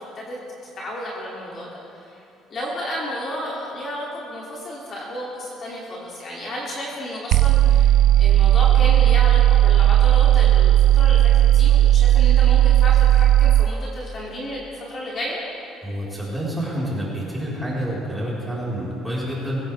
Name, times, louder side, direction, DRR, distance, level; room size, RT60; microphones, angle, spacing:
voice 1, 0.6-1.7 2.1-2.2 2.5-15.4, left 1 dB, 35° left, -5 dB, 2.9 m, -32 dB
sound 1, 7.3-13.7, right 12 dB, 65° right, 0.4 m, -15 dB
voice 2, 15.8-19.6, equal, 5° right, -8 dB, 4.7 m, -28 dB
24.0 x 16.5 x 3.6 m, 2.7 s
cardioid pair, 160°, 0 cm